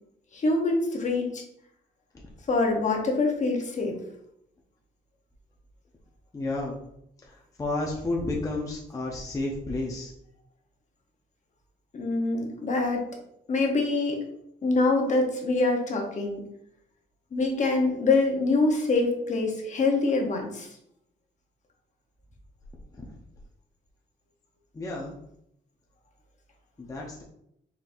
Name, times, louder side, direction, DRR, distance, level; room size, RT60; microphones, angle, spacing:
voice 1, 0.3-1.4 2.5-4.0 11.9-13.0 13.5-14.2 14.6-16.4 17.3-20.7, left 3 dB, 40° left, 1 dB, 1.0 m, -25 dB
voice 2, 6.3-6.8 7.6-10.1 24.7-25.2 26.8-27.2, left 2 dB, 20° left, -2 dB, 0.7 m, -31 dB
4.3 x 3.8 x 2.6 m, 0.75 s
cardioid pair, 120°, 19 cm